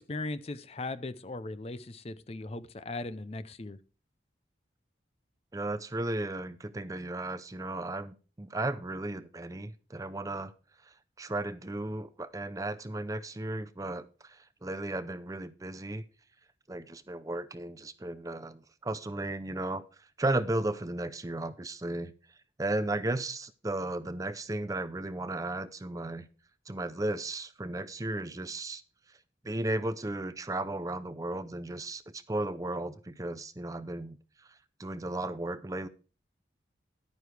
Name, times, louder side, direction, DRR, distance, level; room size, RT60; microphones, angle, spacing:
voice 1, 0.0-3.8, left 2 dB, 35° left, 0.5 m, -38 dB
voice 2, 5.5-10.5 11.2-16.0 16.7-19.8 20.2-22.1 22.6-26.3 26.7-28.8 29.4-34.2 34.8-35.9, right 2 dB, 20° right, 0.5 m, -35 dB
11.0 x 9.3 x 3.3 m
head